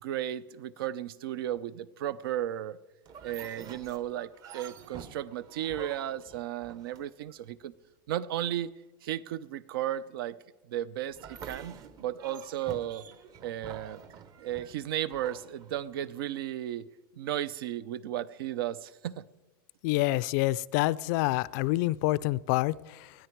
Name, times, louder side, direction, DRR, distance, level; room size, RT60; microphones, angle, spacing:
voice 1, 0.0-2.8 3.2-7.7 8.1-8.7 9.0-10.4 10.7-11.7 12.0-13.0 13.4-14.0 14.4-16.9 17.2-19.1, right 12 dB, 80° right, 0.6 m, -34 dB
sound 1, 3.1-7.4 11.1-16.2, right 7 dB, 30° right, 0.8 m, -47 dB
voice 2, 19.8-23.1, left 18 dB, 50° left, 0.4 m, -27 dB
19.5 x 13.0 x 4.6 m
supercardioid pair, 155°, 12 cm